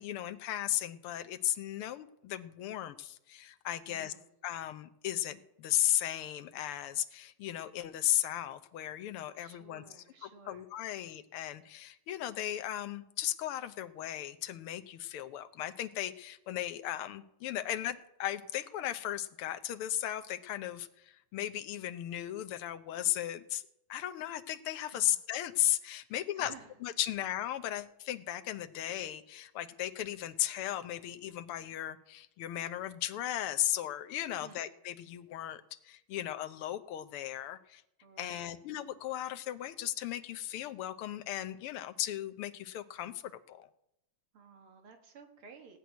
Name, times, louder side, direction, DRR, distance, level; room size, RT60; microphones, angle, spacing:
voice 1, 0.0-4.1 4.4-9.8 10.5-23.6 23.9-26.5 26.8-37.8 38.2-43.7, left 12 dB, 85° left, 12 dB, 1.7 m, -36 dB
voice 2, 3.9-4.3 9.4-11.0 24.9-25.2 26.1-26.7 34.4-34.7 38.0-38.5 44.3-45.8, right 6 dB, 75° right, 5 dB, 2.6 m, -55 dB
17.5 x 6.1 x 9.3 m, 0.82 s
omnidirectional pair, 2.4 m